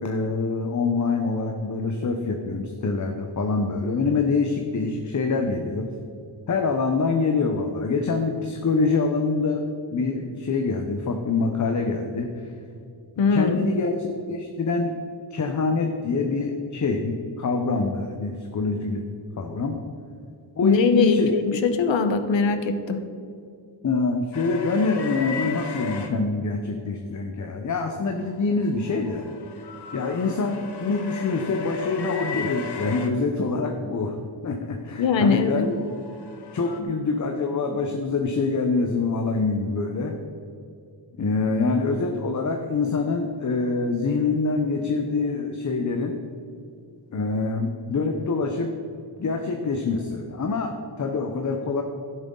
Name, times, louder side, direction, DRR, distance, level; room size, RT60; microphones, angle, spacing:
voice 1, 0.0-5.9 6.5-12.5 13.3-15.0 15.3-19.0 19.4-19.8 20.5-21.3 23.8-29.3 29.9-35.7 36.5-40.2 41.2-46.2 47.1-48.7 49.2-51.8, left 3 dB, 40° left, 4 dB, 0.9 m, -25 dB
voice 2, 13.2-13.7 20.6-23.0 35.0-35.7, left 5 dB, 80° left, 8 dB, 1.1 m, -21 dB
sound 1, 24.3-26.1 28.5-33.1 35.5-36.8, left 5 dB, 65° left, 1.2 m, -34 dB
12.0 x 10.5 x 3.9 m, 2.5 s
wide cardioid pair, 145°, 44 cm